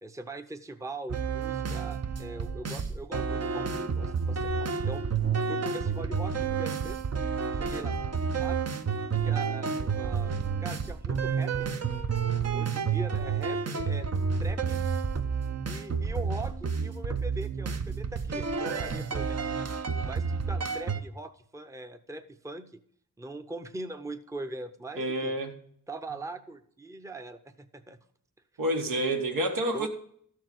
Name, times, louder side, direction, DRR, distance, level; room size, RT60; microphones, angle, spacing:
voice 1, 0.0-5.0 5.4-7.0 7.5-8.0 8.4-8.7 9.1-10.3 10.6-11.7 12.5-14.1 14.4-14.8 15.7-19.7 20.0-22.8 23.2-25.3 25.9-28.0 29.7-29.9, right 2 dB, 10° right, 8 dB, 0.7 m, -41 dB
sound 1, 1.1-21.0, right 5 dB, 50° right, 0.9 m, -30 dB
voice 2, 25.0-25.5 28.6-29.9, right 1 dB, 85° right, 2 dB, 1.8 m, -28 dB
13.0 x 4.6 x 7.8 m, 0.63 s
wide cardioid pair, 90°, 32 cm